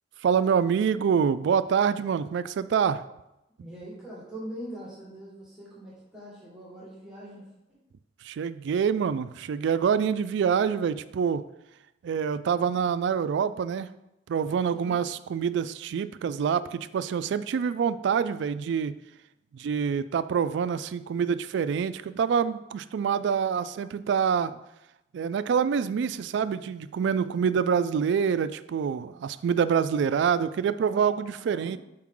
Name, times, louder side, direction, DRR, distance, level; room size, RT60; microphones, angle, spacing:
voice 1, 0.2-3.0 8.2-11.4 12.0-14.0 14.3-19.0 19.5-24.6 25.1-31.8, right 7 dB, 70° right, 14 dB, 0.3 m, -26 dB
voice 2, 3.6-7.8 14.7-15.0 30.7-31.8, right 1 dB, 5° right, -7 dB, 1.5 m, -43 dB
6.0 x 4.6 x 3.7 m, 0.89 s
head